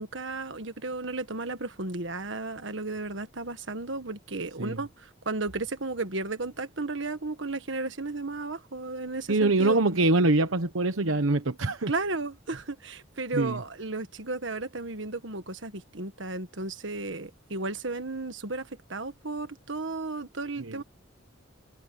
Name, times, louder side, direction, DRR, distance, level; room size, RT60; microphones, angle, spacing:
voice 1, 0.0-9.8 11.9-20.8, right 3 dB, 65° right, 1.6 m, -34 dB
voice 2, 9.3-11.9 13.3-13.6 20.6-20.8, right 2 dB, 80° right, 1.1 m, -24 dB
head